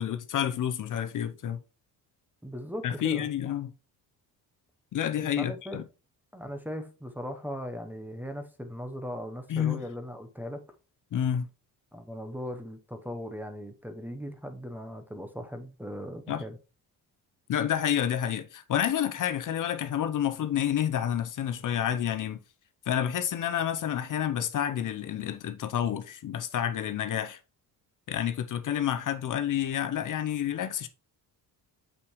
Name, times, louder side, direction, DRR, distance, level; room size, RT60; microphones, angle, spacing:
voice 1, 0.0-1.6 2.8-3.7 4.9-5.8 9.5-9.8 11.1-11.4 16.3-16.4 17.5-22.4 22.9-27.4 28.1-30.9, left 10 dB, 50° left, 0.7 m, -29 dB
voice 2, 2.4-3.3 5.4-5.8 6.3-10.6 11.9-16.6, equal, 5° right, 0.8 m, -38 dB
6.7 x 5.7 x 3.1 m
cardioid pair, 100°, 40 cm